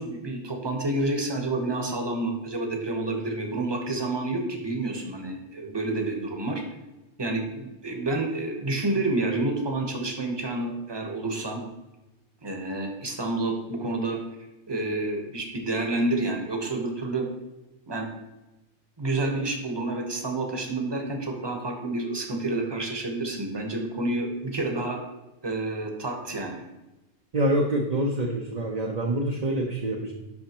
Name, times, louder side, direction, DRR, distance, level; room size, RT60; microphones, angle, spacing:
voice 1, 0.0-6.6 7.2-11.6 12.4-14.2 14.7-17.3 17.9-18.1 19.0-25.0 25.4-26.6, right 2 dB, 20° right, 2 dB, 1.0 m, -29 dB
voice 2, 27.3-30.1, right 1 dB, 40° right, 0 dB, 0.7 m, -26 dB
8.3 x 5.7 x 2.9 m, 1.0 s
omnidirectional pair, 1.3 m